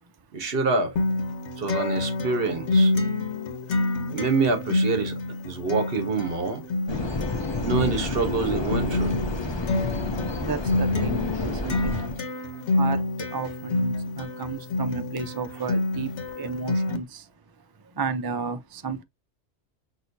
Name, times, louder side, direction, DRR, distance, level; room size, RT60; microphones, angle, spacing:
voice 1, 0.3-0.9 1.6-2.9 4.1-5.2 5.4-6.6 7.6-9.1, right 4 dB, 55° right, 1.2 m, -26 dB
Acoustic guitar, 1.0-17.0, left 2 dB, 70° left, 1.2 m, -28 dB
voice 2, 3.0-4.1 5.5-5.7 7.2-7.7 8.4-8.8 9.3-19.0, right 4 dB, 35° right, 0.4 m, -35 dB
sound 1, 6.9-12.2, left 2 dB, 30° left, 0.6 m, -30 dB
6.2 x 2.7 x 2.6 m
omnidirectional pair, 1.2 m